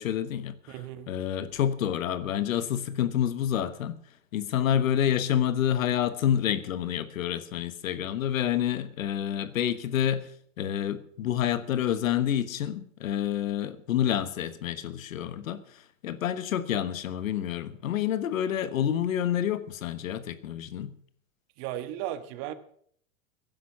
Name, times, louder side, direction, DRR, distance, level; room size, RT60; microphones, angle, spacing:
voice 1, 0.0-0.7 1.1-4.0 4.3-10.3 10.6-20.9, left 10 dB, 80° left, 1.3 m, -28 dB
voice 2, 0.7-1.1 21.6-22.5, right 12 dB, 55° right, 1.5 m, -35 dB
16.0 x 10.5 x 5.8 m
hypercardioid pair, 95°, 40 cm